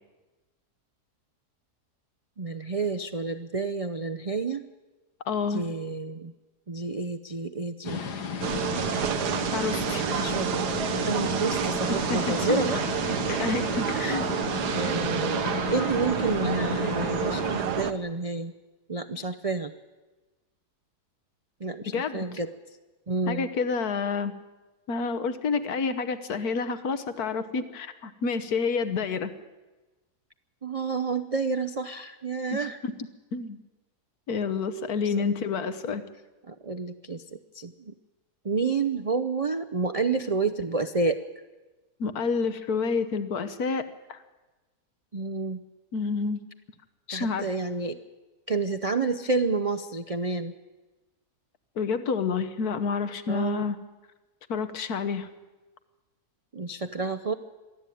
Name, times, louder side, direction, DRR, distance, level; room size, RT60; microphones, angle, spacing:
voice 1, 2.4-4.6 5.5-6.3 6.7-8.0 9.9-12.8 13.1-13.5 14.0-14.2 14.7-18.5 18.9-19.7 21.6-22.5 23.1-23.5 30.6-32.8 36.5-37.9 38.4-41.2 45.1-45.6 47.1-48.0 48.5-50.5 53.3-53.6 56.5-57.3, right 4 dB, 45° right, 8 dB, 0.4 m, -29 dB
voice 2, 5.3-5.6 9.5-10.3 12.1-12.7 13.4-14.3 21.9-22.2 23.3-24.3 24.9-29.3 32.5-32.9 33.3-33.6 34.3-36.0 42.0-44.2 45.9-46.4 47.1-47.5 51.8-53.8 54.5-55.3, left 5 dB, 70° left, 11 dB, 1.6 m, -29 dB
sound 1, 7.9-17.6, left 6 dB, 85° left, 2.1 m, -34 dB
sound 2, 8.4-17.9, right 8 dB, 85° right, 1.5 m, -29 dB
23.0 x 14.0 x 9.2 m, 1.2 s
omnidirectional pair, 1.7 m